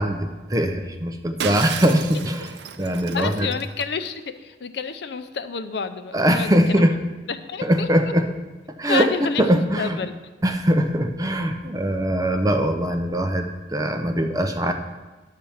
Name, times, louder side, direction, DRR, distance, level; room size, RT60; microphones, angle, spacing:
voice 1, 0.0-3.5 6.1-7.0 7.6-8.3 8.8-10.0 10.4-14.7, equal, 20° right, 5 dB, 0.6 m, -21 dB
Shatter, 1.4-4.1, right 8 dB, 75° right, 0.5 m, -34 dB
voice 2, 3.1-6.8 7.3-7.9 8.9-10.2, left 5 dB, 70° left, 10 dB, 0.5 m, -29 dB
10.5 x 4.3 x 7.1 m, 1.3 s
head